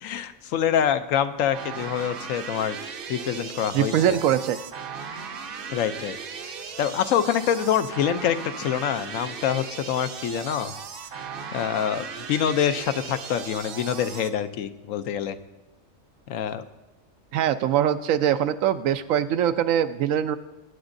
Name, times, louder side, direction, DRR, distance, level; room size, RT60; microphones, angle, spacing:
voice 1, 0.0-2.8 3.1-4.2 5.7-6.2 6.4-10.7 11.5-15.4 16.3-16.6, left 9 dB, 80° left, 10 dB, 1.0 m, -26 dB
sound 1, 1.5-14.3, right 6 dB, 50° right, 0.8 m, -37 dB
voice 2, 3.7-4.6 17.3-20.4, right 10 dB, 80° right, 11 dB, 1.0 m, -22 dB
21.0 x 9.6 x 2.6 m, 1.0 s
omnidirectional pair, 1.4 m